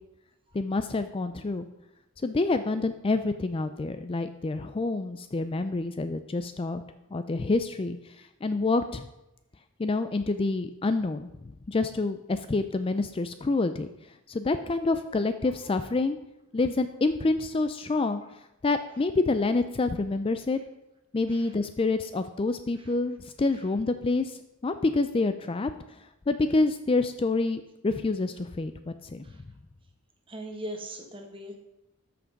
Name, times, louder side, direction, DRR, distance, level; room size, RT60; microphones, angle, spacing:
voice 1, 0.5-1.7 2.2-6.8 7.1-9.1 9.8-13.9 14.3-16.2 16.5-18.4 18.6-20.6 21.1-25.7 26.3-29.2, left 3 dB, 25° left, 10 dB, 0.4 m, -27 dB
voice 2, 30.3-31.6, right 1 dB, 25° right, 3 dB, 1.4 m, -39 dB
13.0 x 6.0 x 5.2 m, 0.92 s
head